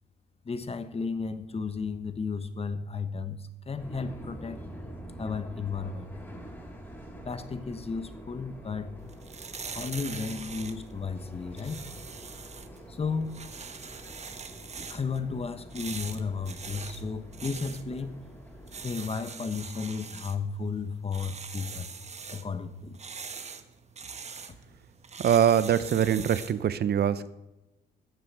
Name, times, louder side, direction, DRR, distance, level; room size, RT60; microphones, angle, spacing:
voice 1, 0.4-4.6 5.2-6.1 7.2-8.9 9.7-11.8 12.9-13.4 14.9-18.2 18.8-21.9 22.3-23.0, left 5 dB, 30° left, 1.0 m, -33 dB
sound 1, 3.8-18.9, equal, 10° left, 3.5 m, -46 dB
sound 2, 9.0-26.6, right 5 dB, 35° right, 1.0 m, -43 dB
voice 2, 25.2-27.3, right 9 dB, 55° right, 0.6 m, -23 dB
14.0 x 7.7 x 6.1 m
cardioid pair, 90°, 20 cm